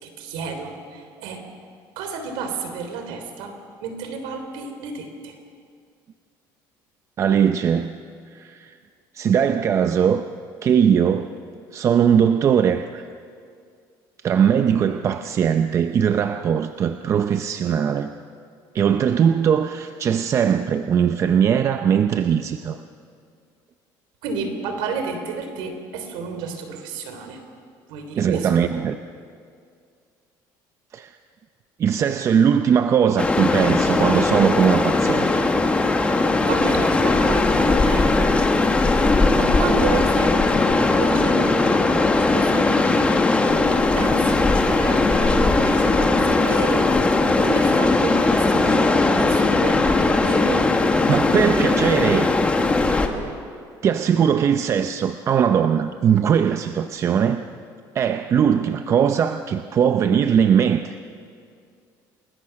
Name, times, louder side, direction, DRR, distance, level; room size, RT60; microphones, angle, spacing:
voice 1, 0.0-1.4 1.9-3.5 3.8-5.4 24.2-27.4 27.9-28.7 36.4-38.2 38.9-39.0 39.3-40.7 41.0-41.8 42.2-43.2 43.7-47.1 47.4-50.7, right 4 dB, 85° right, 6 dB, 3.5 m, -31 dB
voice 2, 7.2-8.0 8.3-8.8 9.1-10.2 10.6-11.3 11.7-13.1 14.2-18.1 18.7-22.8 28.2-29.0 30.9-31.1 31.8-35.4 51.1-52.3 53.8-57.4 57.9-60.9, right 8 dB, 35° right, 8 dB, 0.6 m, -20 dB
sound 1, 33.2-53.1, left 3 dB, 15° left, 1.6 m, -19 dB
28.5 x 20.5 x 5.9 m, 2.2 s
cardioid pair, 145°, 8 cm